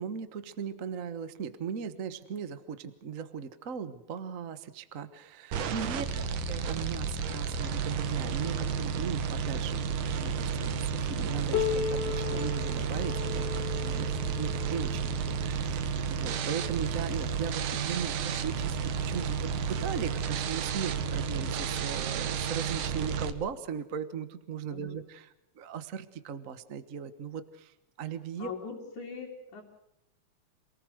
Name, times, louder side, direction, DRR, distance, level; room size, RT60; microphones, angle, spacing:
voice 1, 0.0-9.9 10.2-28.5, right 7 dB, 60° right, 12 dB, 0.8 m, -38 dB
sound 1, 5.5-23.3, right 6 dB, 80° right, 2.8 m, -32 dB
voice 2, 5.9-6.4 11.1-11.2 12.3-12.5 14.1-14.2 24.7-25.0 28.4-29.6, left 5 dB, 75° left, -3 dB, 4.4 m, -43 dB
Piano, 11.5-16.8 17.7-17.8 18.3-18.4 19.2-19.3 20.3-20.4, left 9 dB, 55° left, 1.2 m, -36 dB
28.0 x 19.0 x 6.4 m, 0.81 s
omnidirectional pair, 3.5 m